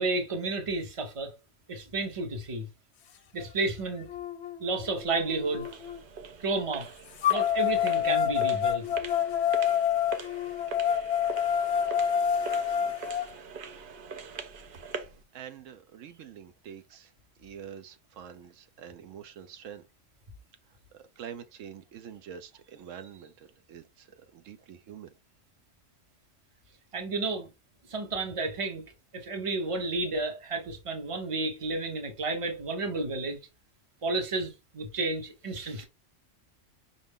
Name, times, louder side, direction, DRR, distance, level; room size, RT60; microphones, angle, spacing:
voice 1, 0.0-1.3 1.7-2.7 3.3-4.1 4.6-5.7 6.4-6.9 7.3-8.9 26.9-27.5 27.9-28.8 29.1-33.4 34.0-35.8, right 3 dB, 30° right, 0.9 m, -31 dB
sound 1, 3.4-3.5 4.1-6.0 7.2-13.2, left 9 dB, 65° left, 0.8 m, -27 dB
sound 2, 5.0-15.2, right 5 dB, 55° right, 0.7 m, -43 dB
voice 2, 12.5-13.1 15.3-17.1 17.4-19.8 20.9-25.1, right 8 dB, 80° right, 1.0 m, -46 dB
5.3 x 2.4 x 3.5 m
omnidirectional pair, 1.3 m